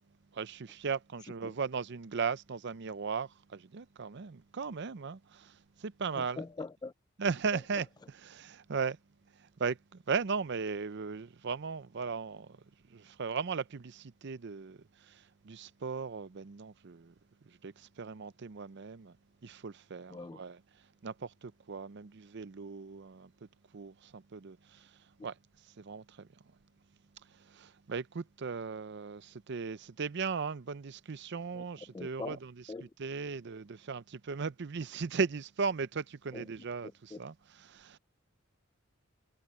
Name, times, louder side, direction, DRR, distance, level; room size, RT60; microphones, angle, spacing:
voice 1, 0.3-6.4 7.2-9.0 9.4-12.6 12.9-17.1 17.5-19.2 19.4-20.6 21.0-23.3 23.7-24.9 25.2-25.3 25.8-26.3 27.4-32.5 33.0-37.3 37.7-38.0, right 5 dB, 55° right, 0.6 m, -37 dB
voice 2, 6.2-6.9 7.5-7.6 20.1-20.4 31.5-31.6 31.9-32.4 32.7-32.9 36.3-36.5 37.1-37.2, left 3 dB, 20° left, 0.3 m, -42 dB
head